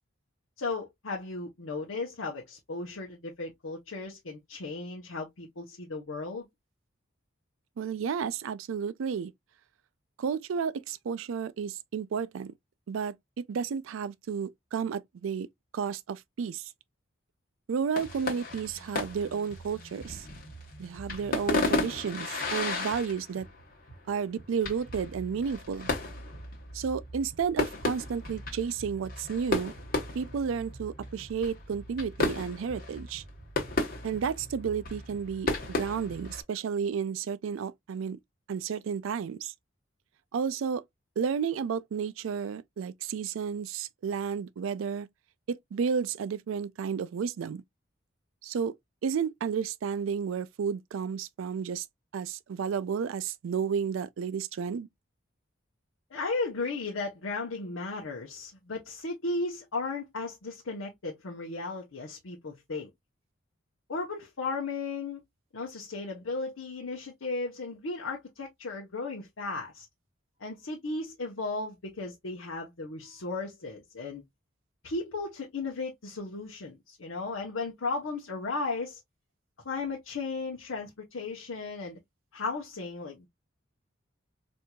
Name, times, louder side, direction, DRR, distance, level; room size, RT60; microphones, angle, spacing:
voice 1, 0.6-6.5 56.1-62.9 63.9-65.2 65.5-69.9 70.4-74.2 74.8-79.0 79.6-82.0 82.3-83.3, left 3 dB, 85° left, 0.8 m, -35 dB
voice 2, 7.8-9.3 10.2-12.5 12.9-15.5 15.7-16.7 17.7-20.3 20.8-23.5 24.1-25.9 26.7-29.7 30.1-33.2 34.0-38.2 38.5-39.5 40.3-40.8 41.2-45.1 45.5-47.6 48.4-48.7 49.0-51.9 52.1-54.9, right 6 dB, 80° right, 0.4 m, -32 dB
sound 1, 18.0-36.4, left 2 dB, 45° left, 1.2 m, -35 dB
4.4 x 2.6 x 2.2 m
head